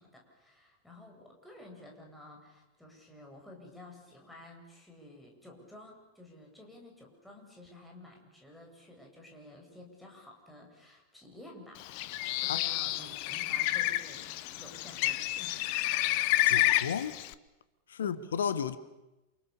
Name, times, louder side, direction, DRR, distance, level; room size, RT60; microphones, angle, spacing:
voice 1, 0.0-11.9 12.4-15.7 18.0-18.2, left 1 dB, 5° left, 7.9 m, -52 dB
Bird, 11.8-17.3, left 16 dB, 45° left, 1.1 m, -30 dB
voice 2, 16.4-17.2 17.9-18.8, left 7 dB, 65° left, 1.3 m, -33 dB
28.5 x 28.5 x 7.0 m
figure-of-eight pair, 90°, 0 cm